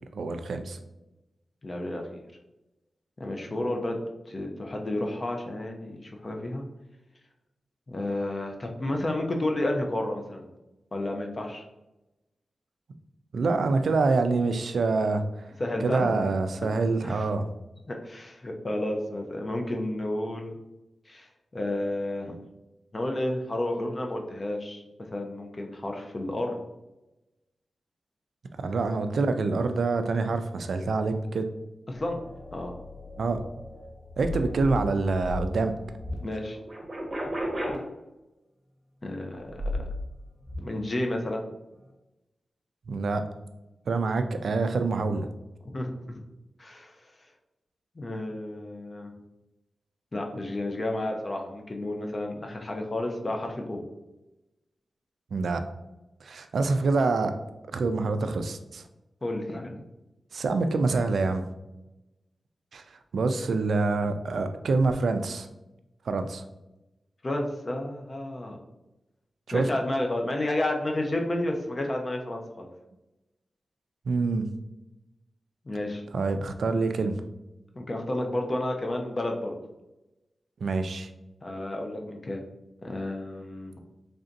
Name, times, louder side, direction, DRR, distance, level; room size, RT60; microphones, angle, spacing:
voice 1, 0.1-0.8 13.3-15.2 15.8-17.5 28.6-31.5 33.2-33.4 34.2-35.7 42.9-43.2 43.9-45.3 55.3-55.6 56.2-57.3 57.7-58.8 60.3-61.4 62.7-62.8 63.1-65.5 66.1-66.4 69.5-69.7 74.1-74.5 76.1-77.2 80.6-81.1, right 3 dB, 65° right, 8 dB, 0.3 m, -26 dB
voice 2, 1.6-2.2 3.2-6.7 7.9-10.5 10.9-11.6 15.6-16.1 16.6-16.7 17.0-17.2 17.9-20.6 21.1-21.3 21.5-22.4 22.9-24.8 25.1-26.6 31.9-32.2 32.5-32.7 36.2-36.6 39.0-39.5 40.6-41.4 45.7-46.3 46.6-47.0 48.0-49.1 50.1-53.8 59.2-59.8 67.2-68.6 69.5-72.7 75.7-76.0 77.7-79.6 81.4-82.4 82.8-83.8, left 1 dB, 30° left, 2 dB, 0.4 m, -31 dB
sound 1, 31.9-36.2 36.5-37.8 39.4-40.1 40.4-40.6, left 1 dB, 20° right, 0.8 m, -35 dB
3.3 x 2.5 x 3.9 m, 0.98 s
wide cardioid pair, 170°, 0 cm